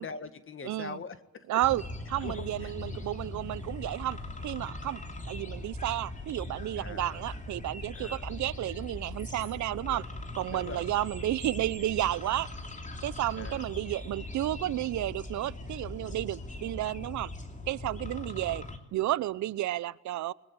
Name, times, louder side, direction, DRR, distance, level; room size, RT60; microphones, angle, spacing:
voice 1, 0.0-1.5 2.2-2.7 6.8-7.2 7.9-8.3 9.7-10.0 10.5-10.8 13.4-13.7, left 5 dB, 45° left, 1.7 m, -43 dB
voice 2, 0.6-1.0 1.5-1.8 2.1-5.0 5.3-10.0 10.4-12.5 13.0-17.3 17.7-18.6 18.9-20.3, right 14 dB, 70° right, 0.8 m, -32 dB
sound 1, 1.6-18.8, left 2 dB, 25° left, 3.0 m, -40 dB
21.0 x 20.5 x 8.7 m
cardioid pair, 90°, 30 cm